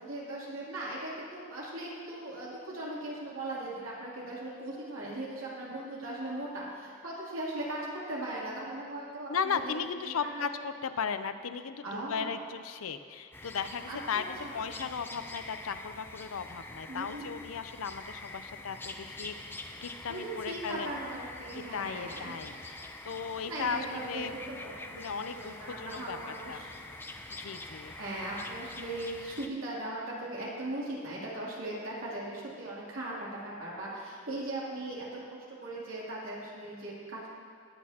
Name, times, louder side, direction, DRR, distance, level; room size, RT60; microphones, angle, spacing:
voice 1, 0.0-9.7 10.0-10.5 11.8-12.4 13.9-14.8 16.9-17.3 20.1-22.4 23.5-26.7 27.6-37.3, right 1 dB, 75° right, -6 dB, 2.9 m, -39 dB
voice 2, 9.3-19.5 19.8-20.9 21.5-24.3 24.9-26.2 26.5-26.6 27.4-28.0, left 6 dB, 85° left, 10 dB, 0.6 m, -36 dB
sound 1, 13.3-29.5, left 2 dB, 10° left, 0.5 m, -45 dB
20.0 x 8.5 x 2.9 m, 2.1 s
head